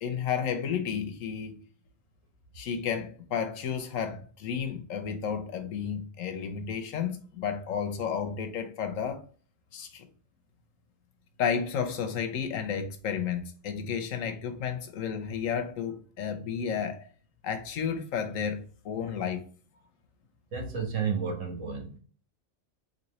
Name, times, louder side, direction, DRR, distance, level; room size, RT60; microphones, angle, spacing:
voice 1, 0.0-1.6 2.5-9.2 9.7-10.1 11.4-17.0 17.4-19.5, left 7 dB, 90° left, 1.2 m, -32 dB
voice 2, 20.5-22.0, right 6 dB, 75° right, 1.5 m, -31 dB
4.2 x 3.0 x 3.0 m
omnidirectional pair, 1.3 m